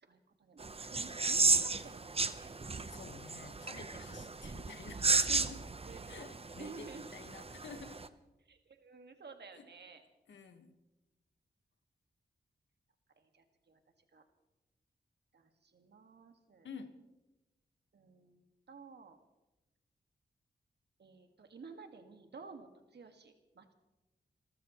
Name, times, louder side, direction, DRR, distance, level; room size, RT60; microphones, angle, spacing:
voice 1, 0.0-2.6 3.6-3.8 5.9-6.2 6.5-7.4 8.5-10.0 13.2-13.8 14.1-14.2 15.3-16.7 17.9-19.2 21.0-23.7, right 4 dB, 65° right, 6 dB, 1.9 m, -53 dB
sound 1, 0.6-8.1, right 3 dB, 30° right, 0.9 m, -34 dB
voice 2, 2.9-5.6 6.1-8.0 9.5-9.7 10.3-10.7 16.6-16.9, left 5 dB, 85° left, 7 dB, 1.5 m, -50 dB
28.5 x 14.0 x 3.1 m, 1.0 s
cardioid pair, 55°, 18 cm